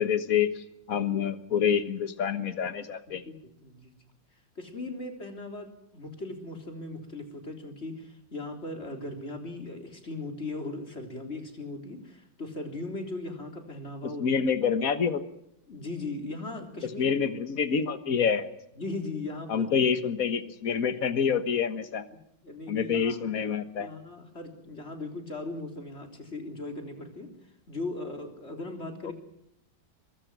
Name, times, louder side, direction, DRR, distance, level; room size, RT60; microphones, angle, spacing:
voice 1, 0.0-3.2 14.2-15.2 16.8-18.5 19.5-22.0 22.7-23.9 29.0-29.1, left 7 dB, 50° left, 10 dB, 1.8 m, -27 dB
voice 2, 3.6-4.0 4.6-14.2 15.7-17.2 18.8-19.7 22.4-23.2 23.8-27.4 27.7-29.1, left 2 dB, 35° left, 4 dB, 3.9 m, -38 dB
23.5 x 23.0 x 6.2 m, 0.78 s
omnidirectional pair, 2.0 m